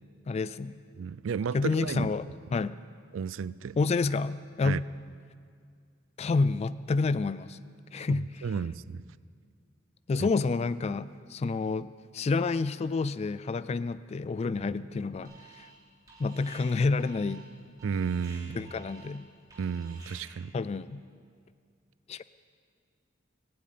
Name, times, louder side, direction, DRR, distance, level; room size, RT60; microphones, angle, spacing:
voice 1, 0.3-0.8 1.5-2.8 3.8-4.8 6.2-7.6 7.9-8.5 10.1-15.7 16.2-17.5 18.6-19.3 20.5-21.0 22.1-22.2, left 3 dB, 35° left, 16 dB, 0.3 m, -29 dB
voice 2, 1.0-2.1 3.1-3.8 4.6-4.8 8.1-9.0 10.2-10.3 17.8-18.7 19.6-20.5, right 6 dB, 90° right, 18 dB, 0.4 m, -33 dB
Alarm, 15.2-15.8 16.1-20.5, right 4 dB, 20° right, 3.1 m, -52 dB
18.0 x 7.5 x 9.4 m, 2.2 s
head